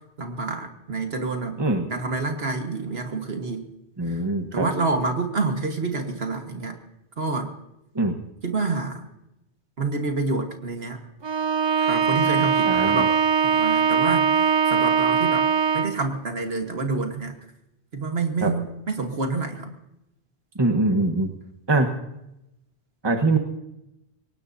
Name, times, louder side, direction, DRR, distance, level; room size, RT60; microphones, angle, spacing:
voice 1, 0.2-1.6 1.9-3.7 4.0-4.2 4.5-6.8 7.2-7.5 8.4-9.0 9.8-11.0 11.8-13.1 13.4-15.5 15.7-17.4 17.9-19.7, right 3 dB, 65° right, 5 dB, 1.8 m, -28 dB
voice 2, 4.0-4.7 7.9-8.2 12.7-13.0 18.4-18.5 20.5-21.3 21.7-21.9 23.0-23.4, right 2 dB, 25° right, 4 dB, 1.2 m, -22 dB
Bowed string instrument, 11.2-16.1, right 6 dB, 40° right, 0.4 m, -21 dB
22.5 x 18.5 x 2.7 m, 0.88 s
omnidirectional pair, 1.2 m